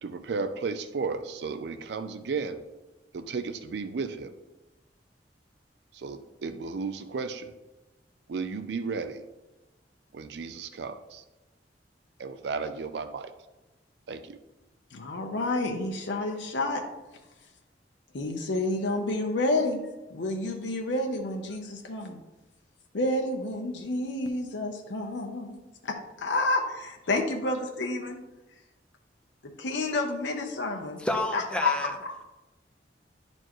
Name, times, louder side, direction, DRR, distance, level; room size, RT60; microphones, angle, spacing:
voice 1, 0.0-2.6 3.1-4.3 5.9-7.5 8.3-9.2 10.1-11.2 12.2-13.3 14.1-14.4, right 4 dB, 65° right, 0.4 m, -34 dB
voice 2, 14.9-16.8 18.1-19.8 20.1-22.2 22.9-25.6 25.8-26.6 27.1-28.2 29.4-31.1 31.3-31.7 32.0-32.3, left 2 dB, 90° left, 0.7 m, -29 dB
voice 3, 31.0-31.9, left 1 dB, 5° left, 0.6 m, -29 dB
10.5 x 4.4 x 3.0 m
head